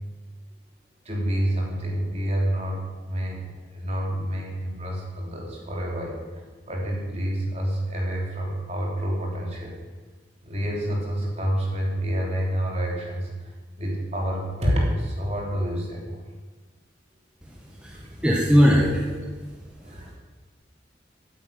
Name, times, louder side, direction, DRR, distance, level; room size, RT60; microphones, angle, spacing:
voice 1, 1.1-9.8 10.4-13.5 13.8-16.2 17.9-18.4 19.8-20.1, equal, 35° right, -2 dB, 3.5 m, -28 dB
voice 2, 17.4-18.8 19.8-20.1, equal, 5° right, -3 dB, 1.5 m, -21 dB
11.0 x 9.2 x 9.4 m, 1.3 s
head